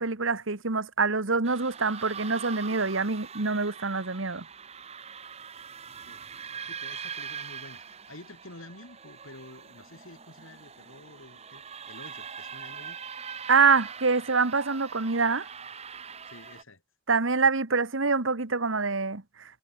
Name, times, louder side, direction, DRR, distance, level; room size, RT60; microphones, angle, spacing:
voice 1, 0.0-4.4 13.5-15.5 17.1-19.6, right 4 dB, 70° right, 1.5 m, -25 dB
sound 1, 1.4-16.6, right 6 dB, 30° right, 1.3 m, -42 dB
voice 2, 6.6-13.0 16.3-16.8, left 1 dB, 75° left, 7.0 m, -49 dB
head